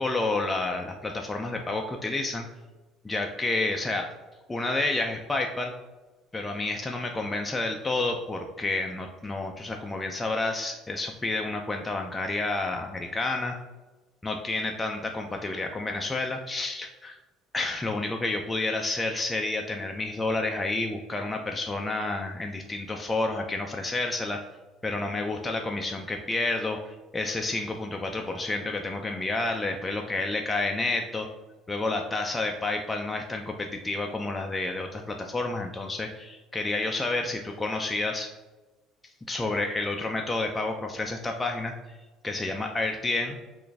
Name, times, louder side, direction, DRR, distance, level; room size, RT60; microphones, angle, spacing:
voice 1, 0.0-2.5 3.0-4.1 4.5-5.7 6.3-13.5 14.2-17.2 17.5-24.4 24.8-31.3 31.7-38.3 39.3-42.0 42.2-43.4, left 2 dB, 20° left, 2 dB, 0.4 m, -30 dB
3.8 x 2.5 x 3.3 m, 1.2 s
hypercardioid pair, 65°, 0 cm